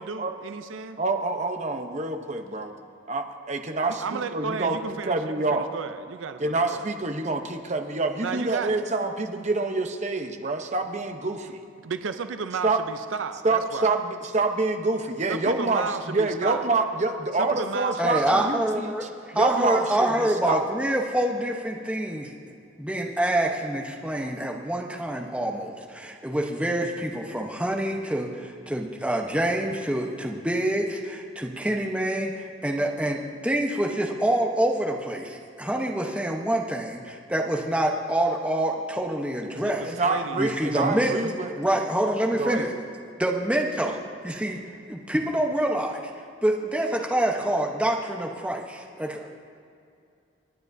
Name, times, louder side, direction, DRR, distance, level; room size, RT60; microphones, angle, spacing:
voice 1, 0.0-1.0 3.8-5.2 5.5-6.9 8.2-8.9 11.8-13.9 15.3-16.7 17.4-18.5 39.5-40.5, right 5 dB, 80° right, 9 dB, 0.5 m, -33 dB
voice 2, 1.0-2.7 3.1-5.7 6.4-11.6 12.6-12.8 13.4-20.6 39.8-41.5 42.4-42.7, right 3 dB, 35° right, 5 dB, 0.8 m, -27 dB
voice 3, 18.0-19.0 19.3-22.3 22.8-39.9 40.4-41.1 41.6-42.7 43.2-44.0 44.2-44.6 44.9-46.0 46.4-49.3, right 1 dB, 5° right, 0 dB, 0.9 m, -26 dB
28.5 x 9.6 x 2.7 m, 2.4 s
head